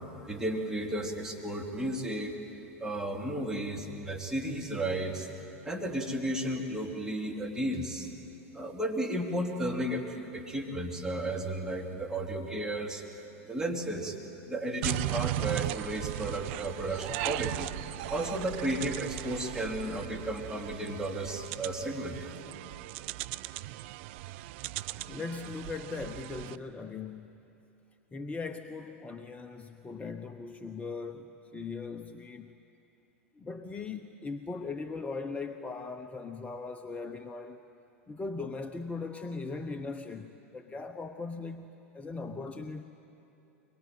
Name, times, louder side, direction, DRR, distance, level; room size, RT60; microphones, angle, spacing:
voice 1, 0.3-2.3 2.8-5.3 5.6-8.1 8.5-13.0 13.5-14.1 14.5-17.7 18.1-22.3, right 1 dB, 5° right, 0 dB, 3.2 m, -33 dB
sound 1, 14.8-26.6, right 16 dB, 55° right, 0.6 m, -37 dB
voice 2, 25.1-27.5 28.1-32.5 33.4-37.6 38.1-42.8, left 4 dB, 15° left, 7 dB, 0.9 m, -39 dB
23.5 x 22.5 x 9.5 m, 2.9 s
figure-of-eight pair, 90°, 8 cm